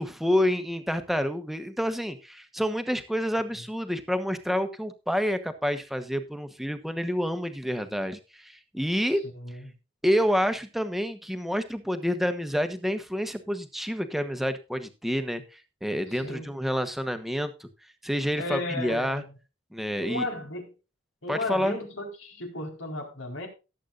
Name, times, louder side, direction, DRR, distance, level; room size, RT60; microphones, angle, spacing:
voice 1, 0.0-9.2 10.0-17.7 18.0-19.2 19.7-20.3 21.3-21.8, equal, ahead, 1.1 m, -28 dB
voice 2, 9.3-9.7 16.1-16.5 18.4-19.3 20.0-20.7 21.2-23.5, left 2 dB, 85° left, 4.3 m, -34 dB
18.0 x 8.4 x 2.5 m
head